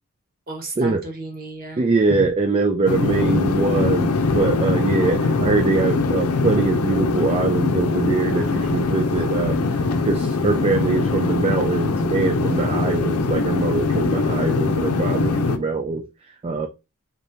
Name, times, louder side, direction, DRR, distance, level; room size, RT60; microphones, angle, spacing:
voice 1, 0.5-2.2, right 1 dB, 45° right, 1.3 m, -33 dB
voice 2, 1.8-16.1 16.4-16.7, right 3 dB, 25° right, 0.4 m, -23 dB
sound 1, 2.9-15.6, left 3 dB, 85° left, 0.6 m, -22 dB
3.9 x 3.4 x 2.7 m
head